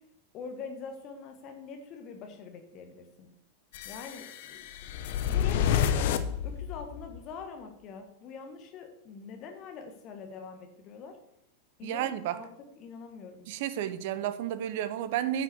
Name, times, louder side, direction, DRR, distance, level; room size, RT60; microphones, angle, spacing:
voice 1, 0.3-3.3 3.8-4.9 5.3-5.9 6.4-11.2 11.8-12.5 12.8-13.5, left 5 dB, 35° left, 5 dB, 1.5 m, -44 dB
sound 1, 3.7-7.2, left 9 dB, 50° left, 0.9 m, -29 dB
voice 2, 11.8-12.4 13.5-15.4, right 11 dB, 50° right, 13 dB, 0.8 m, -32 dB
9.8 x 6.3 x 7.0 m, 0.77 s
figure-of-eight pair, 90°, 0 cm